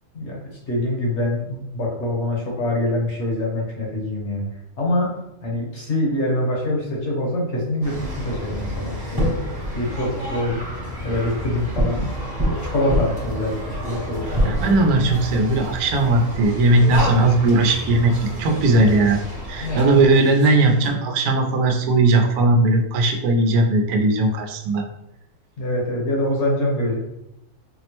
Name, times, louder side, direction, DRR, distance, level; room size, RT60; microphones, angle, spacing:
voice 1, 0.7-4.4 4.8-5.1 5.4-9.3 9.7-10.6 11.0-12.1 12.4-14.7 19.6-20.0 25.6-27.0, left 1 dB, 55° left, -2 dB, 1.1 m, -24 dB
sound 1, 7.8-20.9, equal, 20° right, 0.6 m, -28 dB
voice 2, 14.4-18.1 18.4-19.2 19.5-24.9, right 2 dB, 80° right, 2 dB, 1.1 m, -18 dB
4.3 x 2.0 x 2.9 m, 0.83 s
omnidirectional pair, 1.6 m